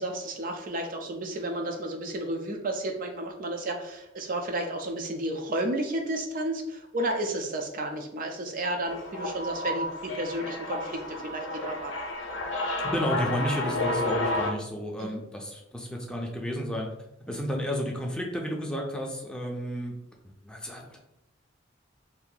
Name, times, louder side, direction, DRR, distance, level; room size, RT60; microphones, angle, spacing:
voice 1, 0.0-11.9 15.0-15.2, right 1 dB, 45° right, 3 dB, 0.4 m, -32 dB
sound 1, 8.9-14.5, left 1 dB, 65° left, 0.5 m, -31 dB
voice 2, 12.8-16.9 17.3-19.9 20.4-21.0, equal, 5° left, -1 dB, 0.5 m, -32 dB
2.7 x 2.6 x 3.8 m, 0.83 s
head